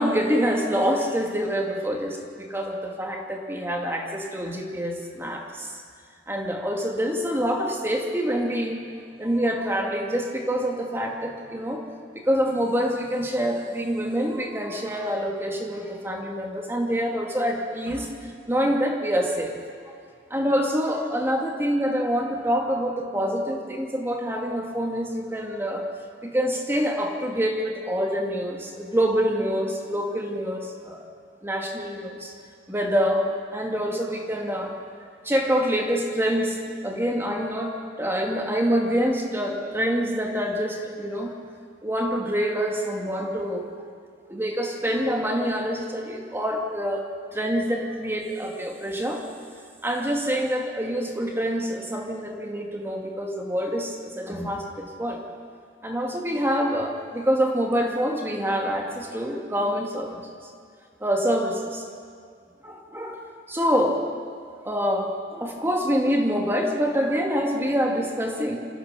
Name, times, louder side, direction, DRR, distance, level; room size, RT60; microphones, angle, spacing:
voice 1, 0.0-5.8 6.3-8.8 9.2-11.8 12.1-19.5 19.9-20.0 20.3-25.8 26.2-31.0 31.4-32.3 32.7-34.7 35.2-36.6 36.8-41.3 41.8-43.7 44.3-47.1 47.3-49.2 49.8-55.2 55.8-60.2 61.0-61.8 62.6-63.2 63.5-64.0 64.6-68.6, equal, 15° right, 1 dB, 2.2 m, -26 dB
27.0 x 15.0 x 6.8 m, 2.1 s
head